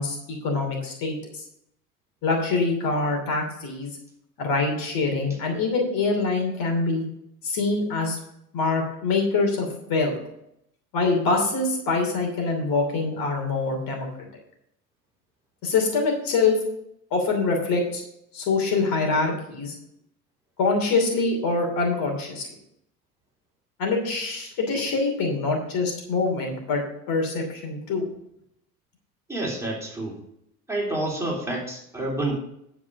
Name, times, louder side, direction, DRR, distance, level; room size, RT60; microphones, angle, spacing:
voice 1, 0.0-1.4 2.2-3.9 4.4-7.0 7.4-8.2 8.5-10.1 10.9-14.1 15.6-16.6 17.1-18.0 18.3-19.7 20.6-22.4 23.8-26.8 27.1-28.0, left 3 dB, 50° left, 2 dB, 2.9 m, -24 dB
voice 2, 29.3-30.2 30.7-32.4, right 2 dB, 5° right, -3 dB, 3.5 m, -28 dB
11.0 x 4.9 x 6.5 m, 0.76 s
hypercardioid pair, 75°, 45 cm